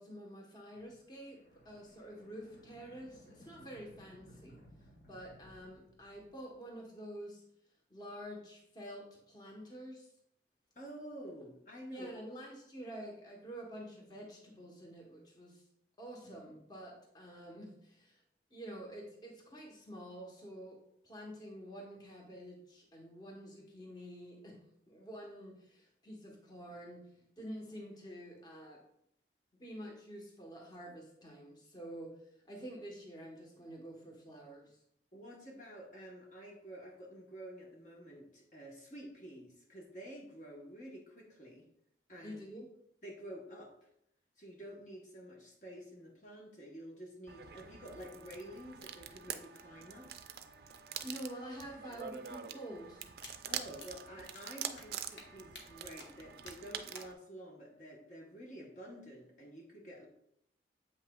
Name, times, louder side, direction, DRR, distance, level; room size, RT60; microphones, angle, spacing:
voice 1, 0.0-1.4 1.6-4.6 5.1-7.4 7.9-10.1 11.9-15.6 16.0-18.2 18.5-20.8 21.0-27.1 27.4-28.8 29.6-32.1 32.5-34.8 42.2-42.7 51.0-53.1, equal, 25° left, 0 dB, 1.0 m, -48 dB
sound 1, 0.7-6.6, equal, 70° left, 2.0 m, -60 dB
voice 2, 10.7-12.1 35.1-41.7 42.1-42.4 43.0-43.9 44.4-50.1 53.5-60.1, equal, 45° left, -2 dB, 1.0 m, -49 dB
sound 2, 47.3-57.1, right 9 dB, 55° right, 0.4 m, -45 dB
sound 3, 53.2-53.3 53.8-53.9 54.3-54.4 54.8-54.9 55.2-55.3 55.5-55.6 56.0-56.1 56.5-56.6 56.9-57.0, left 3 dB, 85° left, 1.1 m, -50 dB
7.6 x 5.6 x 2.3 m, 0.72 s
head